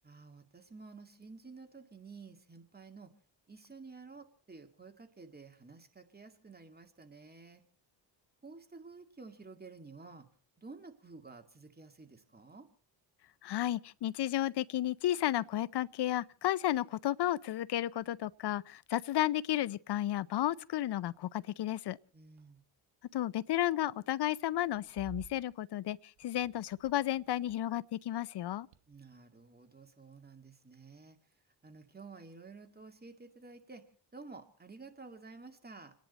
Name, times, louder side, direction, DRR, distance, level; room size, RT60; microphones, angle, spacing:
voice 1, 0.0-3.1 3.5-7.6 8.4-10.3 10.6-12.7 22.1-22.6 28.9-31.2 31.6-33.8 34.1-35.9, right 4 dB, 20° right, 2.2 m, -52 dB
voice 2, 13.4-22.0 23.1-28.7, left 13 dB, 60° left, 0.7 m, -33 dB
sound 1, 17.2-17.5 17.8-19.5 20.3-20.7 20.9-21.2 22.0-23.0 24.4-27.9 28.3-29.2, right 11 dB, 80° right, 1.1 m, -57 dB
29.5 x 10.5 x 4.1 m
cardioid pair, 80°, 47 cm